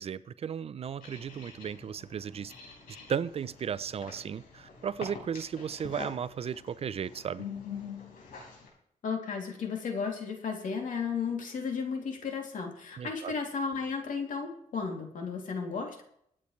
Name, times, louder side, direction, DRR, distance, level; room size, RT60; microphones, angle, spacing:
voice 1, 0.0-2.5 3.1-7.4 13.0-13.3, right 7 dB, 45° right, 0.4 m, -35 dB
sound 1, 1.0-8.7, left 6 dB, 90° left, 4.9 m, -45 dB
voice 2, 9.0-16.0, left 5 dB, 70° left, 2.8 m, -34 dB
24.5 x 8.6 x 3.2 m
cardioid pair, 120°, 14 cm